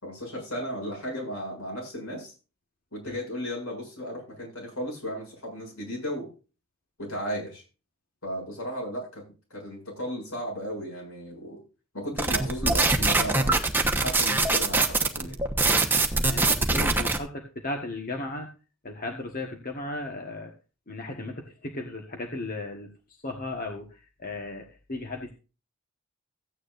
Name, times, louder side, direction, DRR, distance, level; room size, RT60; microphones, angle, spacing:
voice 1, 0.0-2.3 2.9-6.3 7.0-7.6 8.2-9.2 9.5-11.6 11.9-13.6 13.9-15.4, equal, 80° left, -1 dB, 7.4 m, -35 dB
sound 1, 12.2-17.2, right 3 dB, 10° right, 1.1 m, -23 dB
voice 2, 16.2-18.5 18.8-20.5 20.9-22.9 23.2-25.3, left 2 dB, 40° left, 2 dB, 1.5 m, -35 dB
15.5 x 9.5 x 2.6 m, 0.33 s
head